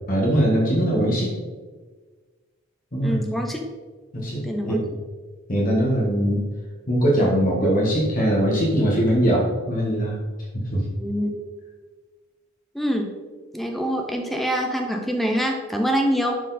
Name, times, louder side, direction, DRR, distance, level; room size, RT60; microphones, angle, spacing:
voice 1, 0.1-1.3 2.9-3.3 4.1-5.0 5.5-6.4 6.9-10.2 10.7-10.8, equal, 40° left, -4 dB, 1.6 m, -21 dB
voice 2, 3.0-3.7 4.4-4.8 11.0-11.4 12.7-13.1 13.5-16.4, equal, ahead, 2 dB, 0.6 m, -25 dB
11.0 x 4.4 x 4.1 m, 1.4 s
head